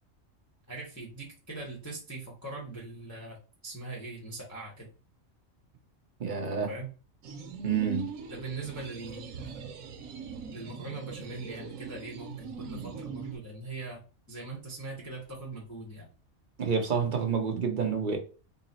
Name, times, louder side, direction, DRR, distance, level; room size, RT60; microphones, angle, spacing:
voice 1, 0.7-3.4 3.6-4.9 6.7-6.9 8.3-9.6 10.5-14.0 14.3-16.1, right 3 dB, 15° left, 0.8 m, -41 dB
voice 2, 6.2-6.7 7.6-8.1 16.6-18.2, right 6 dB, 45° right, 0.8 m, -28 dB
sound 1, 7.2-13.4, right 6 dB, 85° right, 1.1 m, -41 dB
3.9 x 2.0 x 4.0 m
omnidirectional pair, 1.4 m